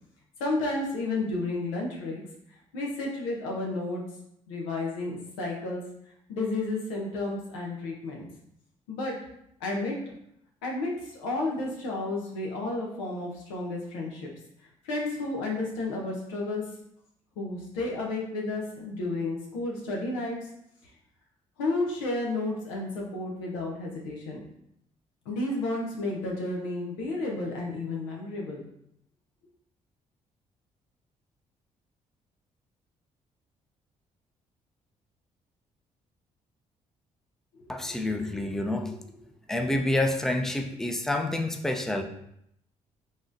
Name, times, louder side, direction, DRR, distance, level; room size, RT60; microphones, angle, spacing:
voice 1, 0.4-2.2 2.7-4.0 4.5-5.8 6.3-8.3 8.9-9.1 9.6-10.1 10.6-14.3 14.8-16.6 17.4-20.4 21.6-24.4 25.3-28.6 37.6-38.1, left 2 dB, 85° left, -1 dB, 0.8 m, -32 dB
voice 2, 37.7-39.0 39.5-42.0, left 1 dB, 5° left, 4 dB, 0.5 m, -28 dB
4.1 x 3.6 x 2.6 m, 0.75 s
hypercardioid pair, 45°, 17 cm